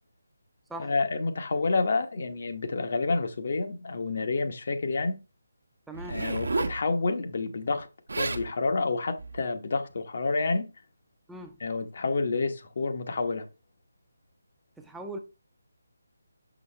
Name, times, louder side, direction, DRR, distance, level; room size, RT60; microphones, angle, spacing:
voice 1, 0.8-5.2 6.1-7.9 8.2-10.7 11.6-13.5, left 3 dB, 50° left, 1.0 m, -29 dB
voice 2, 5.9-6.2 11.3-11.6 14.8-15.2, right 1 dB, 5° right, 0.6 m, -40 dB
Zipper (clothing), 5.9-6.8 7.8-7.9 8.1-8.5 9.2-9.4, right 3 dB, 65° right, 1.0 m, -31 dB
6.1 x 5.4 x 3.2 m
figure-of-eight pair, 150°, 0 cm